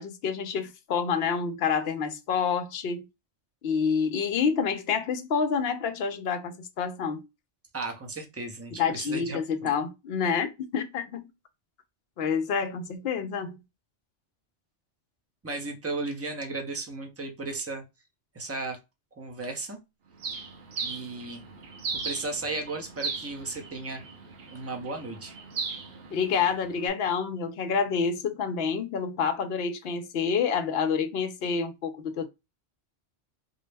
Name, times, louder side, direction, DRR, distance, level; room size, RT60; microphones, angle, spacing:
voice 1, 0.0-3.1 3.6-7.2 8.8-11.3 12.2-13.6 26.1-32.3, left 6 dB, 65° left, 0.8 m, -28 dB
voice 2, 7.7-9.7 15.4-17.8 18.3-18.8 19.2-19.8 20.8-21.4 22.0-24.0 24.5-25.3, right 3 dB, 15° right, 0.5 m, -35 dB
Bird, 20.2-26.9, right 4 dB, 60° right, 0.9 m, -38 dB
3.9 x 2.0 x 3.3 m
omnidirectional pair, 1.2 m